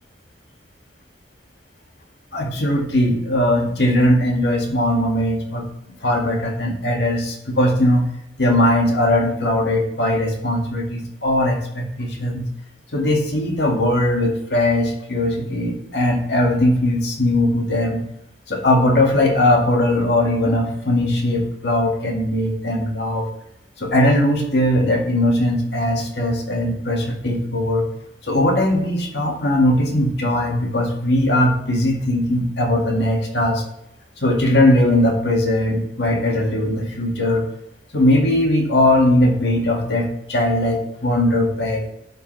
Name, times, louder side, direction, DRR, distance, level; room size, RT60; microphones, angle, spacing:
voice 1, 2.3-5.7 6.0-8.1 8.4-12.5 12.9-18.0 18.5-23.3 23.8-27.9 28.3-33.6 34.2-37.5 37.9-41.8, left 1 dB, 70° left, 1 dB, 2.0 m, -19 dB
11.5 x 6.8 x 3.3 m, 0.79 s
head